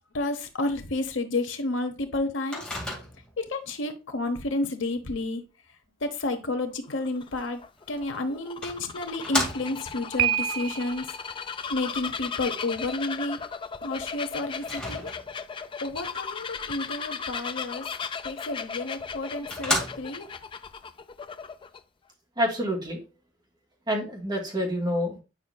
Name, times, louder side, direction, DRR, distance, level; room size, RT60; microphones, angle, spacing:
voice 1, 0.1-2.7 3.4-5.4 6.0-7.6 7.9-11.2 11.7-13.4 13.8-15.1 15.8-17.9 18.2-20.2, left 2 dB, 70° left, 1.0 m, -31 dB
Microwave oven, 2.5-3.4 7.8-7.9 8.6-10.0 14.6-15.5 18.6-18.7 19.1-19.2 19.5-20.4, left 1 dB, 5° left, 2.1 m, -32 dB
Bird vocalization bird call bird song, 6.8-21.8, left 6 dB, 25° left, 0.3 m, -37 dB
Piano, 10.2-11.1, right 10 dB, 85° right, 0.3 m, -27 dB
voice 2, 22.4-23.0 23.9-25.2, equal, 25° right, 2.3 m, -27 dB
9.2 x 5.6 x 2.3 m
head